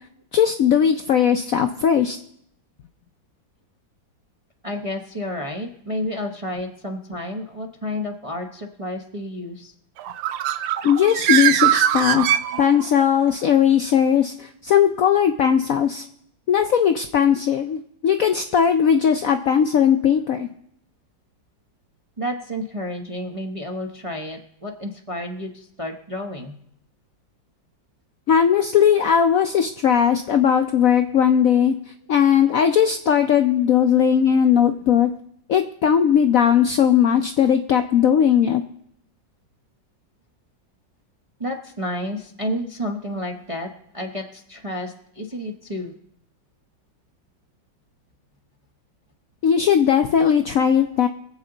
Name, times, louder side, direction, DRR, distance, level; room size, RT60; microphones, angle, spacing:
voice 1, 0.3-2.2 10.8-12.3 12.6-16.0 16.5-20.5 28.3-31.8 32.1-35.2 35.5-38.6 49.4-51.1, left 8 dB, 70° left, 7 dB, 0.8 m, -18 dB
voice 2, 4.6-9.7 12.5-12.6 22.2-26.5 34.2-34.4 41.4-45.9, left 1 dB, 30° right, 2 dB, 0.7 m, -31 dB
Bird, 10.0-13.0, right 11 dB, 85° right, 1.4 m, -21 dB
23.5 x 7.9 x 3.9 m, 0.72 s
omnidirectional pair, 2.0 m